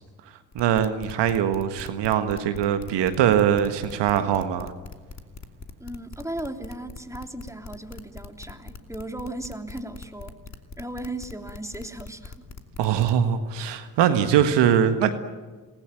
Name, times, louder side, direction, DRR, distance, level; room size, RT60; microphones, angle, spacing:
sound 1, 0.5-13.2, left 4 dB, 35° left, 2.8 m, -41 dB
voice 1, 0.5-4.7 12.8-15.1, right 9 dB, 65° right, 9 dB, 1.7 m, -22 dB
voice 2, 5.8-10.4 10.8-12.5 12.9-13.0, right 1 dB, 5° right, 5 dB, 3.2 m, -36 dB
27.5 x 20.0 x 9.1 m, 1.4 s
figure-of-eight pair, 40°, 45 cm